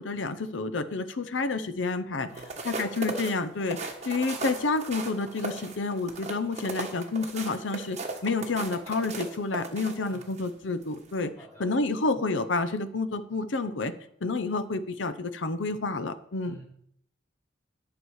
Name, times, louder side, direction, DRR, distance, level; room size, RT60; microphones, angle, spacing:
voice 1, 0.0-2.3 2.6-11.3 11.6-13.9 14.2-16.6, left 3 dB, 80° left, 12 dB, 0.7 m, -29 dB
voice 2, 2.3-3.1 10.0-10.3 11.4-12.0 16.4-16.6, right 1 dB, 15° left, -6 dB, 4.1 m, -51 dB
sound 1, 2.3-10.5 10.9-11.1, right 3 dB, 35° right, 1.3 m, -36 dB
11.0 x 6.1 x 4.8 m, 0.70 s
head